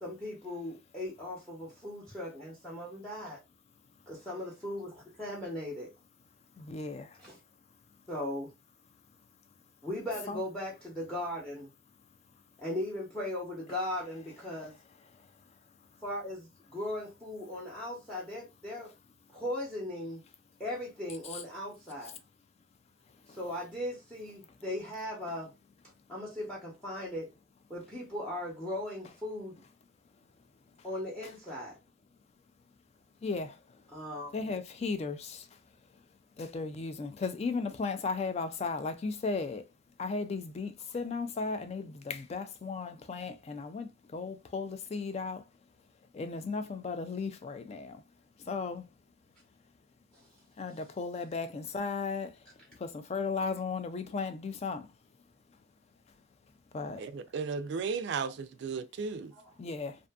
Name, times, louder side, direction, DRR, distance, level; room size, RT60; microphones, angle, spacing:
voice 1, 0.0-3.4 4.1-5.9 7.2-7.4 8.1-8.5 9.8-11.7 12.6-14.7 16.0-18.9 19.3-20.2 20.6-22.2 23.3-25.5 26.1-27.3 27.7-29.5 30.8-31.8 33.9-34.3 59.3-59.4, left 1 dB, 5° left, 0.7 m, -38 dB
voice 2, 6.6-7.2 10.3-10.4 21.3-21.4 23.3-23.4 33.2-33.6 34.3-35.5 36.4-39.6 40.0-45.4 46.1-48.0 48.5-48.8 50.6-52.3 52.8-54.9 56.7-57.0 59.6-60.0, left 4 dB, 30° left, 0.3 m, -35 dB
voice 3, 57.0-59.3, right 5 dB, 60° right, 0.3 m, -35 dB
2.6 x 2.5 x 2.2 m
head